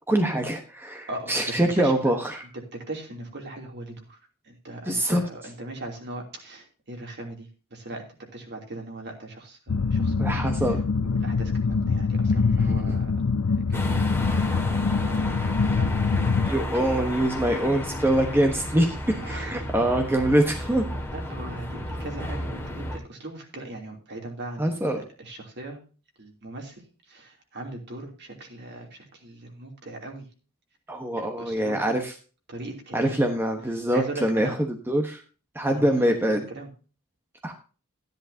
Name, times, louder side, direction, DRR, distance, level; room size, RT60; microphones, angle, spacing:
voice 1, 0.1-2.4 4.9-5.2 10.2-10.8 12.9-13.0 16.4-20.9 24.6-25.0 30.9-32.1 32.9-34.5 34.9-35.2 35.5-36.4 37.4-37.5, right 1 dB, 10° right, 4 dB, 1.1 m, -24 dB
voice 2, 1.1-1.4 1.8-2.0 2.7-4.2 4.4-8.0 8.3-10.8 11.0-14.0 14.3-14.5 15.0-17.1 19.2-19.7 20.5-20.7 21.1-25.8 26.2-30.3 31.2-32.0 32.5-33.3 33.9-34.5 35.7-36.7, right 2 dB, 50° right, 1 dB, 3.0 m, -39 dB
sound 1, 9.7-16.5, left 4 dB, 80° left, 0.6 m, -24 dB
sound 2, 13.7-23.0, left 1 dB, 10° left, 2.0 m, -33 dB
13.5 x 10.5 x 2.8 m, 0.35 s
head